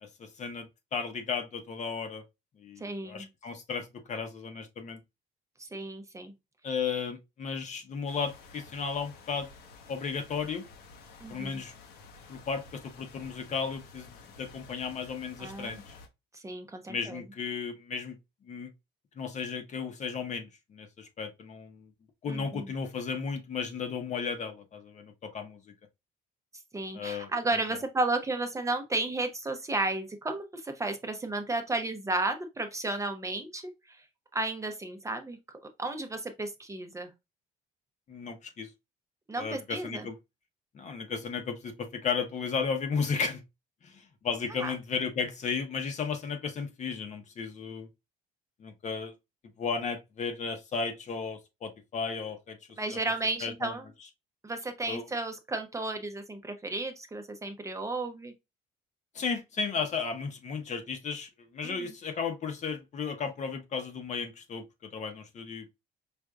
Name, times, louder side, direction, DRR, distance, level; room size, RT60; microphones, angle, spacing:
voice 1, 0.0-2.2 2.6-5.0 6.6-9.5 9.9-10.7 11.3-11.7 12.3-15.9 16.9-18.2 18.5-18.7 19.2-21.9 22.2-25.7 26.9-27.6 38.1-38.7 39.4-40.1 40.7-43.4 43.8-47.9 48.6-49.1 49.6-53.0 53.4-53.8 54.9-55.0 59.1-65.7, left 5 dB, 45° left, 0.8 m, -34 dB
voice 2, 2.8-3.3 5.6-6.3 11.2-11.6 15.4-15.8 16.3-17.2 22.3-22.7 26.7-34.0 34.3-35.4 35.8-37.1 39.3-40.1 44.5-44.7 52.8-53.9 54.4-58.3 61.6-61.9, right 2 dB, 20° right, 0.6 m, -33 dB
sound 1, 8.1-16.1, left 3 dB, 80° left, 0.9 m, -52 dB
4.9 x 2.6 x 2.2 m
cardioid pair, 110°, 17 cm